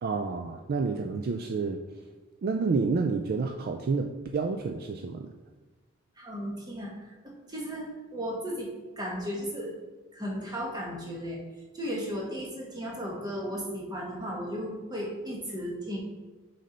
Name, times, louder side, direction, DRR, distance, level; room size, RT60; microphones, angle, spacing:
voice 1, 0.0-1.8 2.4-5.3, right 4 dB, 50° right, 4 dB, 0.3 m, -29 dB
voice 2, 6.2-9.7 10.1-11.4 11.7-16.0, equal, 20° right, -3 dB, 1.3 m, -35 dB
6.5 x 4.3 x 3.9 m, 1.2 s
head